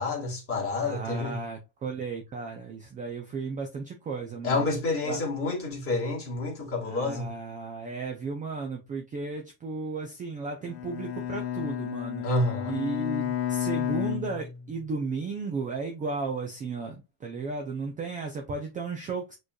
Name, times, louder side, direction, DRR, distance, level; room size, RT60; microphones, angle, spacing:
voice 1, 0.0-1.4 4.4-7.3 12.2-12.8, left 3 dB, 25° left, 2.0 m, -29 dB
voice 2, 0.8-4.7 5.0-5.2 6.9-12.3 12.6-19.3, right 4 dB, 15° right, 0.4 m, -34 dB
Bowed string instrument, 10.6-15.0, left 10 dB, 60° left, 1.0 m, -32 dB
6.5 x 3.2 x 2.3 m
supercardioid pair, 135°, 50 cm